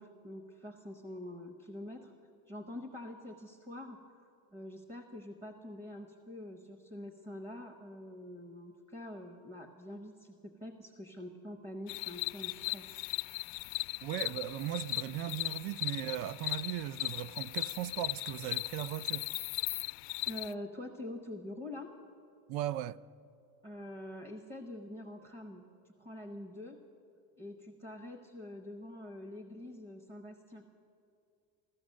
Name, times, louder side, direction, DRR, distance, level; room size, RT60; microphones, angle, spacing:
voice 1, 0.0-2.1 2.5-4.0 4.5-13.9 20.3-21.9 23.6-26.8 27.4-30.6, left 1 dB, 15° right, 0.7 m, -46 dB
sound 1, 11.9-20.5, left 24 dB, 80° left, 0.5 m, -38 dB
voice 2, 14.0-19.3 22.5-23.0, right 13 dB, 85° right, 0.5 m, -37 dB
15.5 x 13.0 x 6.4 m
cardioid pair, 175°, 36 cm